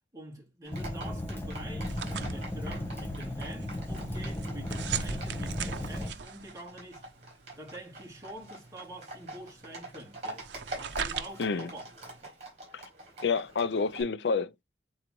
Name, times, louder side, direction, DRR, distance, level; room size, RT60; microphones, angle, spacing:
voice 1, 0.1-7.0 7.6-10.4 10.7-11.8 12.2-12.3, right 1 dB, 20° right, 2.3 m, -46 dB
Livestock farm animals working animals, 0.6-14.0, right 2 dB, 40° right, 4.6 m, -46 dB
Fire, 0.7-6.1, left 1 dB, 15° left, 0.9 m, -36 dB
sound 1, 1.9-12.2, right 6 dB, 85° right, 0.6 m, -40 dB
voice 2, 11.4-11.7 12.7-12.8 13.2-14.6, left 5 dB, 80° left, 0.5 m, -29 dB
8.6 x 4.0 x 3.0 m
head